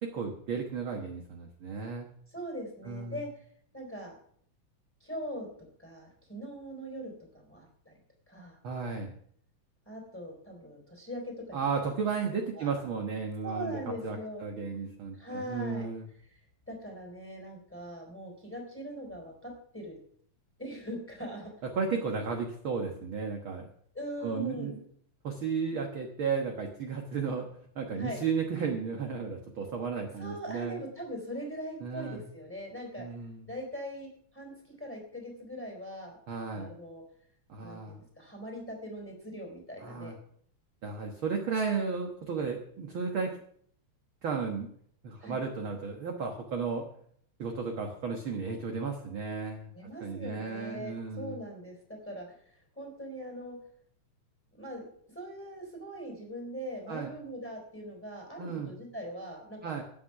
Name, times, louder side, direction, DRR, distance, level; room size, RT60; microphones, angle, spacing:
voice 1, 0.0-2.1 2.9-3.2 8.6-9.1 11.5-16.0 21.7-23.7 24.2-24.8 25.2-27.5 27.8-30.8 31.8-32.2 33.0-33.5 36.3-36.7 37.5-38.0 39.8-40.1 40.8-43.3 44.2-44.7 45.0-46.9 47.4-49.7 50.0-51.4 56.9-57.1 58.4-58.7 59.6-59.8, right 5 dB, 50° right, 2 dB, 1.9 m, -34 dB
voice 2, 2.3-3.4 3.7-4.1 5.0-7.9 8.3-8.6 9.9-11.6 12.5-12.8 13.4-14.4 15.1-15.9 16.7-20.0 20.6-21.5 23.9-24.7 28.0-28.2 30.2-33.0 33.5-36.2 36.5-37.0 37.6-40.1 45.2-45.4 49.7-53.6 54.5-59.8, equal, 5° left, 2 dB, 3.7 m, -41 dB
13.5 x 9.5 x 5.9 m, 0.64 s
omnidirectional pair, 3.4 m